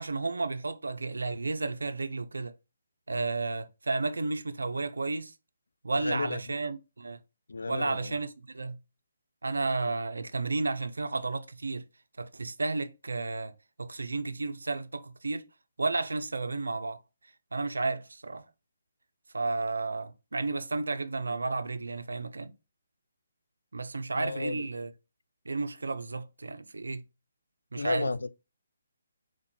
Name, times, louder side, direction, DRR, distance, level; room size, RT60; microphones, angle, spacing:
voice 1, 0.0-2.5 3.1-5.3 5.8-7.2 7.7-8.8 9.4-11.8 12.2-13.5 13.8-15.4 15.8-17.0 17.5-18.4 19.3-22.5 23.7-24.9 25.5-27.0 27.7-28.1, right 3 dB, 85° right, 0.5 m, -32 dB
voice 2, 5.9-6.4 7.5-8.2 24.1-24.7 27.7-28.3, left 3 dB, 80° left, 0.4 m, -33 dB
4.5 x 2.5 x 4.3 m
figure-of-eight pair, 150°, 0 cm